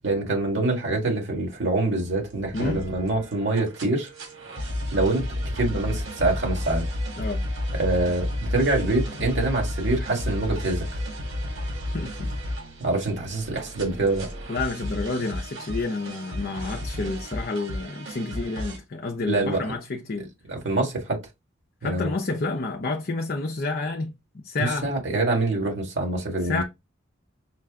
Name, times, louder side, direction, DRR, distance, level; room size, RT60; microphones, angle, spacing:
voice 1, 0.0-4.1 4.9-5.3 5.6-6.8 7.7-10.9 12.8-14.3 19.3-19.6 20.5-21.2 21.8-22.1 24.6-26.6, right 2 dB, 60° right, 1.9 m, -25 dB
sound 1, 2.0-18.8, left 1 dB, 85° right, 2.7 m, -32 dB
voice 2, 2.5-2.8 7.2-7.4 11.9-12.3 14.5-20.3 21.8-24.9 26.4-26.6, left 3 dB, 45° left, 0.6 m, -29 dB
5.8 x 2.2 x 3.5 m
head